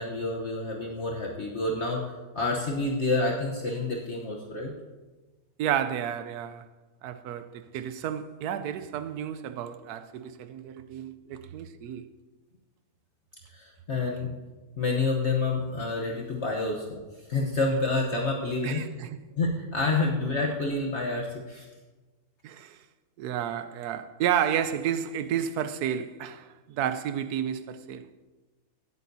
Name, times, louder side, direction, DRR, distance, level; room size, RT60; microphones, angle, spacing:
voice 1, 0.0-4.7 13.5-14.3 14.8-17.0 17.3-18.8 19.4-21.7, left 3 dB, 50° left, 1.2 m, -28 dB
voice 2, 5.6-6.7 7.0-12.1 18.6-19.2 22.4-22.8 23.2-28.1, right 9 dB, 90° right, 1.1 m, -31 dB
16.5 x 9.1 x 2.7 m
omnidirectional pair, 1.6 m